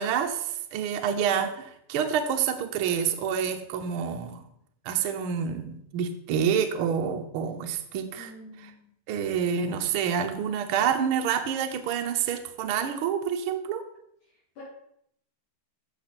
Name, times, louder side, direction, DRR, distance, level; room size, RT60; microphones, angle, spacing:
voice 1, 0.0-4.5 4.8-8.3 9.1-13.8, right 7 dB, 65° right, 6 dB, 1.4 m, -28 dB
voice 2, 8.1-9.2 14.6-14.7, left 2 dB, 75° left, -10 dB, 4.9 m, -48 dB
14.5 x 6.0 x 4.3 m, 0.72 s
omnidirectional pair, 3.5 m